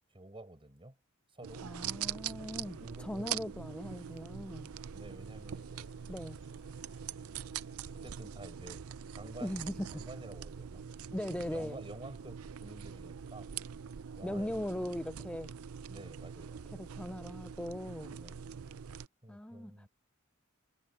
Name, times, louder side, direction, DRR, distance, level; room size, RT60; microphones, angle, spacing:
voice 1, 0.1-1.0 1.3-1.7 2.8-3.5 4.9-5.9 7.9-8.8 9.2-10.9 11.5-13.5 14.2-14.6 15.9-16.6 18.1-18.5 19.2-19.9, right 1 dB, 25° right, 5.5 m, -50 dB
sound 1, 1.4-19.1, right 8 dB, 90° right, 0.5 m, -43 dB
voice 2, 1.6-4.7 6.1-6.4 9.4-10.0 11.1-11.8 14.2-15.5 16.7-18.2 19.3-19.9, left 1 dB, 5° left, 0.4 m, -39 dB
sound 2, 4.0-9.7, left 3 dB, 60° left, 7.6 m, -69 dB
head